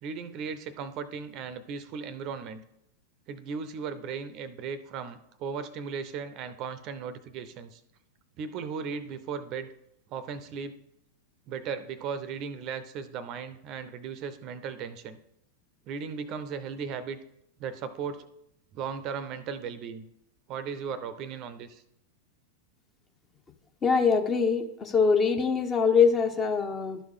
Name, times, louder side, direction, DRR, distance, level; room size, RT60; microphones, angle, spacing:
voice 1, 0.0-2.6 3.3-7.8 8.4-9.7 10.1-10.8 11.5-15.2 15.9-17.2 17.6-18.3 18.7-20.0 20.5-21.8, right 6 dB, 40° right, 13 dB, 0.6 m, -36 dB
voice 2, 23.8-27.0, left 5 dB, 25° left, 7 dB, 0.8 m, -23 dB
12.0 x 4.7 x 3.7 m, 0.78 s
figure-of-eight pair, 90°, 0 cm